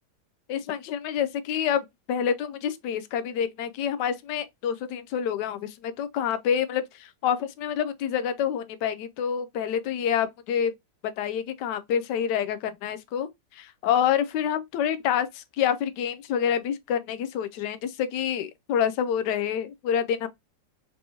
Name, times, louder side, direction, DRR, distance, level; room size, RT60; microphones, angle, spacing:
voice 1, 0.5-10.7 11.2-20.3, left 8 dB, 75° left, 1.1 m, -27 dB
5.3 x 2.9 x 2.7 m
omnidirectional pair, 2.0 m